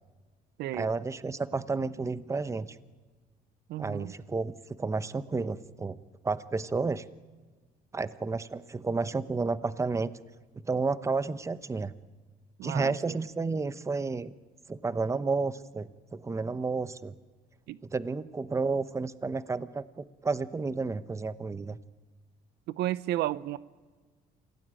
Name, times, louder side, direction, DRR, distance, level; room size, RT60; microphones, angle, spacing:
voice 1, 0.7-2.8 3.8-6.0 6.2-7.0 7.9-10.1 10.7-11.9 12.6-14.3 14.7-17.1 17.9-21.8, right 4 dB, 15° right, 14 dB, 0.9 m, -31 dB
voice 2, 3.7-4.1 12.6-13.2 17.7-17.8 22.7-23.6, right 14 dB, 75° right, 18 dB, 0.7 m, -32 dB
27.5 x 17.5 x 9.0 m, 1.4 s
cardioid pair, 110°, 17 cm